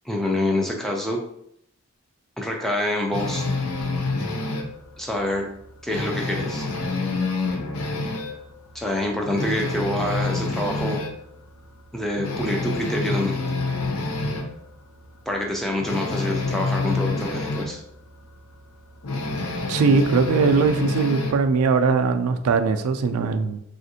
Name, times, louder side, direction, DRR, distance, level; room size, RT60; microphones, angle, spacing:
voice 1, 0.1-1.2 2.4-3.4 5.0-5.5 5.8-6.7 8.7-11.0 11.9-13.4 15.3-17.8, left 1 dB, ahead, 0 dB, 0.3 m, -26 dB
sound 1, 3.1-4.7 5.2-5.3 5.7-8.4 8.8-8.9 9.2-11.1 11.6-11.7 12.2-14.5 15.8-17.7 19.0-21.4, left 3 dB, 85° left, 0.5 m, -27 dB
voice 2, 19.7-23.6, right 4 dB, 90° right, 7 dB, 0.3 m, -20 dB
3.5 x 2.4 x 2.7 m, 0.73 s
head